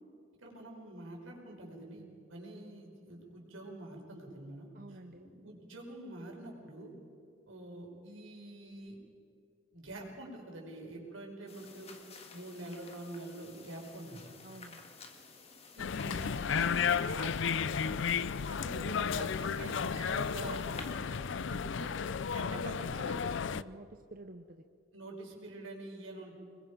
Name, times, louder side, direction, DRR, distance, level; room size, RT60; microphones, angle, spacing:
voice 1, 0.4-6.9 7.5-9.0 9.7-11.9 12.3-14.2 15.8-18.0 18.4-21.9 22.3-23.3 24.9-26.3, right 1 dB, 80° right, -1 dB, 5.3 m, -46 dB
voice 2, 4.7-5.2 14.4-14.9 23.5-24.6, right 1 dB, 45° right, 6 dB, 0.8 m, -50 dB
sound 1, 11.5-20.9, left 4 dB, 30° left, 1.9 m, -53 dB
Binaural Street sounds Winchester, 15.8-23.6, left 6 dB, 65° left, 0.5 m, -33 dB
25.5 x 21.5 x 5.2 m, 2.5 s
head